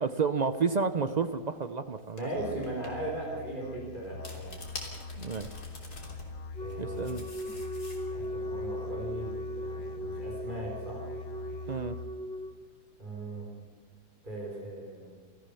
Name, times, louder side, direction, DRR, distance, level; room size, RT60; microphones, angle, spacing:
voice 1, 0.0-2.3 5.2-5.5 6.8-7.2 11.7-12.0, right 5 dB, 75° right, 11 dB, 0.4 m, -30 dB
sound 1, 1.2-1.4 2.2-2.3 2.6-2.9 4.0-6.2 6.7-8.3, left 2 dB, 65° left, 3.8 m, -45 dB
voice 2, 2.1-4.5 6.6-7.2 8.1-11.1 11.4-11.5 13.0-13.5 14.2-15.1, right 1 dB, 30° right, -3 dB, 5.0 m, -38 dB
Musical instrument, 2.3-12.3, left 4 dB, 85° left, 1.7 m, -43 dB
Wind instrument woodwind instrument, 6.5-12.6, equal, 10° left, 0.3 m, -38 dB
27.0 x 14.5 x 6.9 m, 1.5 s
omnidirectional pair, 1.8 m